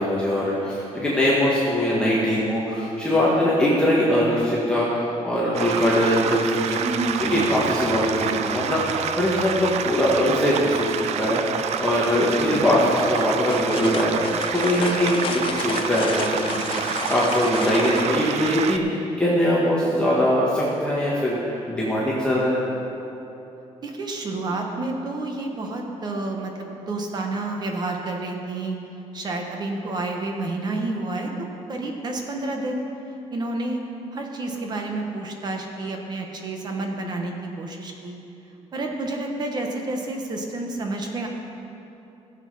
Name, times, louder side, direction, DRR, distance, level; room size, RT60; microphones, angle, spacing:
voice 1, 0.0-6.8 7.3-22.6, equal, 10° left, -7 dB, 1.6 m, -22 dB
sound 1, 5.5-18.8, right 8 dB, 65° right, 0.5 m, -28 dB
voice 2, 6.8-7.5 12.4-12.7 23.8-28.8 29.1-31.3 31.7-32.9 33.3-33.8 34.1-38.2 38.7-41.3, right 2 dB, 35° right, 2 dB, 1.3 m, -29 dB
sound 2, 13.1-18.1, left 8 dB, 45° left, 0.5 m, -32 dB
16.5 x 7.3 x 5.6 m, 2.9 s
cardioid pair, 175°, 12 cm